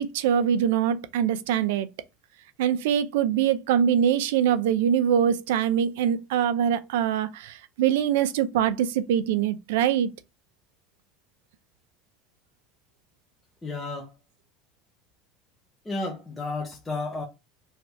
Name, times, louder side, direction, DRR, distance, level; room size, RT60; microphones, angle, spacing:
voice 1, 0.0-1.9 2.6-10.1, right 9 dB, 85° right, 0.5 m, -23 dB
voice 2, 13.6-14.1 15.8-17.2, left 3 dB, 10° left, 0.8 m, -32 dB
3.2 x 2.7 x 4.5 m
supercardioid pair, 140°, 0 cm